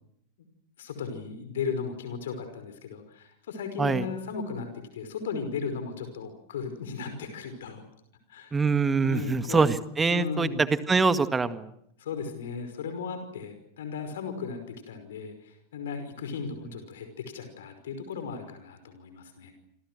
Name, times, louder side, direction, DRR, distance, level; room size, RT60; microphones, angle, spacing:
voice 1, 0.8-4.7 4.9-7.8 8.3-8.6 9.0-9.7 10.1-10.6 12.0-17.1 17.3-19.5, left 5 dB, 60° left, 8 dB, 5.4 m, -36 dB
voice 2, 8.5-11.7, right 4 dB, 15° right, 12 dB, 1.9 m, -24 dB
29.0 x 27.5 x 6.4 m, 0.72 s
figure-of-eight pair, 90°, 0 cm